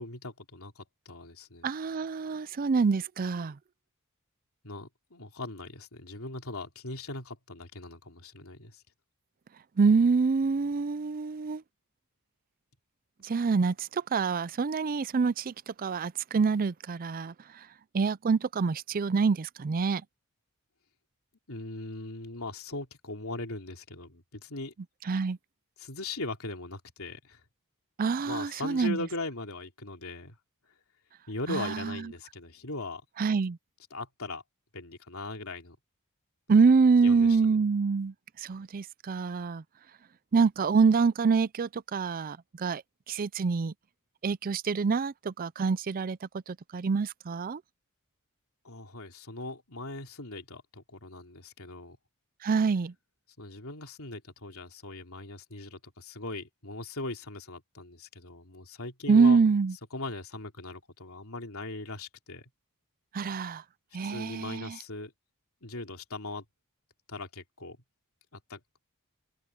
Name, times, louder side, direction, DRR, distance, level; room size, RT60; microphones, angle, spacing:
voice 1, 0.0-1.7 4.6-8.8 21.5-24.7 25.8-27.4 28.2-30.4 31.3-33.0 33.9-34.4 34.7-35.8 37.0-37.4 48.6-52.0 53.4-59.4 59.9-62.5 64.0-65.1 65.6-66.5 67.1-67.8 68.3-68.6, left 2 dB, 65° left, 3.6 m, -39 dB
voice 2, 1.6-3.6 9.8-11.6 13.2-17.7 17.9-20.0 25.1-25.4 28.0-29.0 31.5-32.0 33.2-33.6 36.5-39.6 40.3-42.8 43.1-43.7 44.2-47.6 52.4-52.9 59.1-59.7 63.1-63.6 63.9-64.8, right 5 dB, 40° right, 0.4 m, -26 dB
head